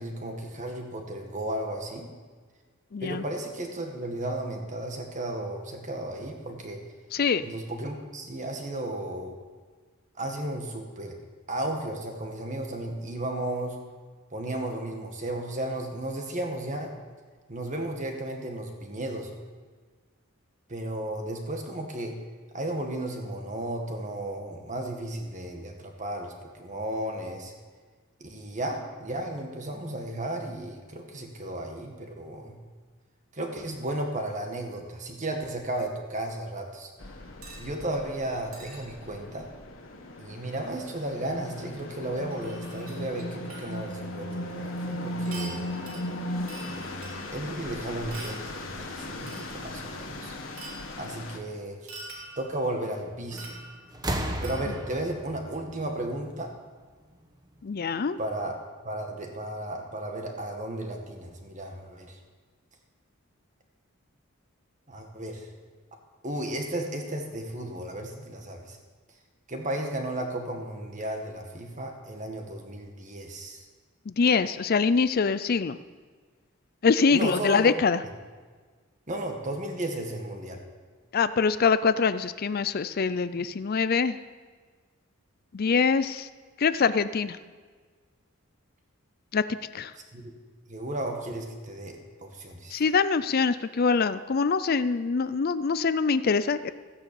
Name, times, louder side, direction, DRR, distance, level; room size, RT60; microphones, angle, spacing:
voice 1, 0.0-2.1 3.0-6.8 7.4-9.3 10.2-11.1 11.5-13.8 14.3-16.9 17.5-19.3 20.7-22.2 22.5-27.5 28.2-32.6 33.3-36.9 37.6-39.5 40.2-45.7 46.7-50.4 51.0-51.9 52.4-53.6 54.4-56.5 58.2-58.6 58.8-62.2 64.9-65.5 66.2-68.8 69.5-73.6 77.1-77.7 79.1-80.6 83.4-83.5 90.1-90.3 90.7-92.8, right 1 dB, 35° right, 3 dB, 1.9 m, -34 dB
voice 2, 2.9-3.2 7.1-7.4 57.6-58.2 74.2-75.8 76.8-78.0 81.1-84.2 85.5-86.3 86.6-87.4 89.3-89.4 89.7-89.9 92.7-96.7, left 5 dB, 45° left, 14 dB, 0.4 m, -24 dB
sound 1, 37.0-51.4, left 1 dB, 70° left, 1.8 m, -37 dB
sound 2, 37.4-37.7 38.5-38.8 40.9-41.0 41.4-41.5 42.3-43.8 44.3-44.4 45.2-47.5 48.1-48.5 49.3-49.6 50.6-51.0 51.9-52.7 53.4-54.0 54.4-55.0 55.7-55.8, right 2 dB, 90° right, 3.6 m, -45 dB
sound 3, 53.3-53.6 53.9-56.7 57.8-57.9, right 1 dB, 20° right, 1.1 m, -34 dB
14.5 x 9.8 x 7.1 m, 1.5 s
head